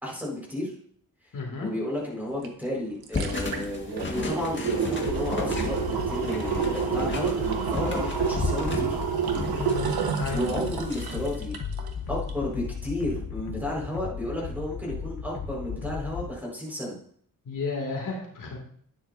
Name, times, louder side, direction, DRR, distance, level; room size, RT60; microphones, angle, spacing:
voice 1, 0.0-0.7 1.6-9.0 10.3-11.5 12.1-16.9, left 1 dB, 5° right, -4 dB, 5.0 m, -32 dB
voice 2, 1.3-1.7 9.5-10.4 17.4-18.6, left 4 dB, 60° left, -1 dB, 2.6 m, -33 dB
sound 1, 2.4-2.5 2.8-11.9 12.3-12.4, right 7 dB, 90° right, 1.4 m, -29 dB
sound 2, 3.1-11.4, left 3 dB, 30° left, 1.7 m, -35 dB
sound 3, 5.0-16.3, left 6 dB, 85° left, 1.3 m, -36 dB
12.0 x 9.8 x 2.7 m, 0.62 s
wide cardioid pair, 105°, 36 cm